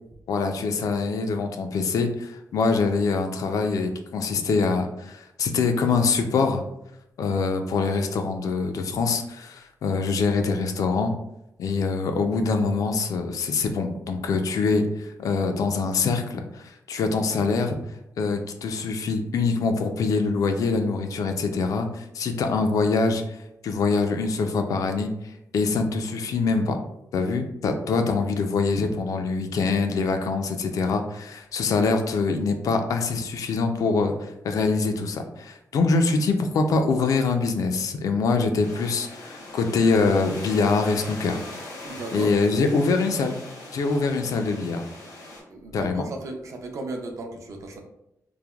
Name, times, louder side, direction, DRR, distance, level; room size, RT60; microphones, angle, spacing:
voice 1, 0.3-6.6 7.2-11.1 11.6-17.8 18.2-23.4 23.6-25.1 25.5-26.8 27.1-41.4 42.1-43.4 43.7-44.9 45.7-46.0, left 4 dB, 65° left, 6 dB, 0.3 m, -24 dB
sound 1, 38.6-45.4, left 2 dB, 90° left, 0.9 m, -40 dB
voice 2, 41.8-42.4 45.5-47.8, right 2 dB, 55° right, 3 dB, 0.4 m, -35 dB
3.1 x 2.1 x 2.2 m, 0.84 s
wide cardioid pair, 140°, 6 cm